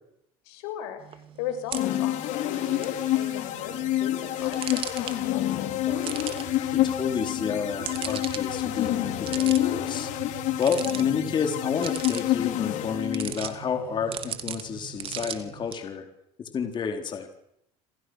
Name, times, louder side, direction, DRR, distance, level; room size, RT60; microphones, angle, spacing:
voice 1, 0.4-6.3, left 9 dB, 90° left, 8 dB, 6.1 m, -38 dB
sound 1, 1.0-15.7, right 9 dB, 40° right, 2.8 m, -40 dB
sound 2, 1.7-13.5, left 13 dB, 60° left, 3.4 m, -28 dB
sound 3, 2.3-15.8, right 12 dB, 85° right, 7.1 m, -46 dB
voice 2, 6.6-10.1 10.6-16.1 16.4-17.3, left 6 dB, 35° left, 5 dB, 4.2 m, -30 dB
28.0 x 27.5 x 6.6 m, 0.77 s
cardioid pair, 125°, 14 cm